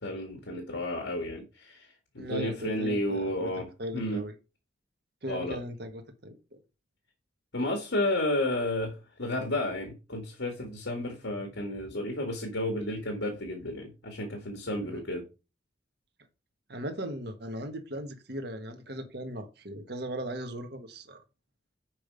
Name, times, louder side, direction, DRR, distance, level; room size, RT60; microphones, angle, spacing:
voice 1, 0.0-1.9 2.1-4.2 5.3-5.6 7.5-15.2, left 1 dB, 80° left, 2.1 m, -32 dB
voice 2, 2.2-4.3 5.2-6.6 14.9-15.0 16.7-21.2, equal, 60° right, 1.5 m, -38 dB
7.6 x 5.3 x 5.0 m
head